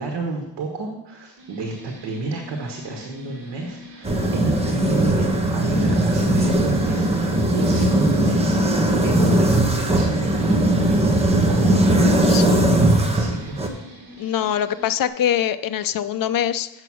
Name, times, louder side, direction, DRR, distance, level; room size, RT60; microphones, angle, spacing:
voice 1, 0.0-8.5 9.0-10.9 11.2-13.6, right 3 dB, 80° right, 3 dB, 1.5 m, -30 dB
sound 1, 1.4-15.1, left 1 dB, 55° right, 2.3 m, -43 dB
sound 2, 4.0-13.7, right 1 dB, 15° right, 1.1 m, -19 dB
voice 2, 14.2-16.7, left 10 dB, 55° left, 11 dB, 0.6 m, -23 dB
8.0 x 6.7 x 6.0 m, 0.94 s
cardioid pair, 130°, 41 cm